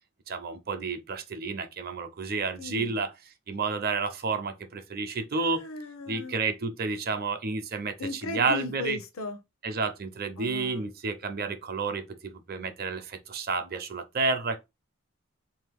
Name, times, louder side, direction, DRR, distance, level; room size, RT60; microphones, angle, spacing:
voice 1, 0.3-3.1 3.5-5.6 6.1-9.0 9.6-14.6, right 4 dB, 50° right, 0.6 m, -30 dB
voice 2, 2.6-2.9 5.4-6.4 8.0-9.4 10.4-10.9, left 2 dB, 90° left, 0.8 m, -37 dB
3.8 x 2.8 x 3.5 m
head